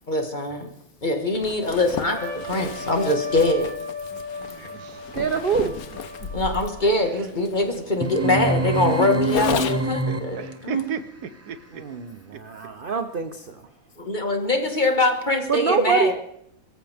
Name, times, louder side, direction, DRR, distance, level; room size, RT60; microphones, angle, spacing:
voice 1, 0.1-0.7 1.0-3.7 4.6-4.7 6.3-10.8 14.0-16.1, left 2 dB, 30° left, 5 dB, 1.8 m, -23 dB
Zipper (clothing), 1.3-10.0, left 7 dB, 70° left, 1.3 m, -34 dB
Trumpet, 2.1-7.1, left 4 dB, 55° left, 4.0 m, -35 dB
voice 2, 4.1-5.0 6.2-6.3 10.4-11.8, right 7 dB, 80° right, 12 dB, 1.5 m, -36 dB
voice 3, 5.1-5.7 11.7-13.6 15.5-16.1, right 5 dB, 45° right, 8 dB, 0.8 m, -25 dB
sound 1, 8.0-10.6, right 2 dB, 10° right, 0.8 m, -25 dB
23.0 x 14.0 x 3.5 m, 0.74 s
omnidirectional pair, 1.6 m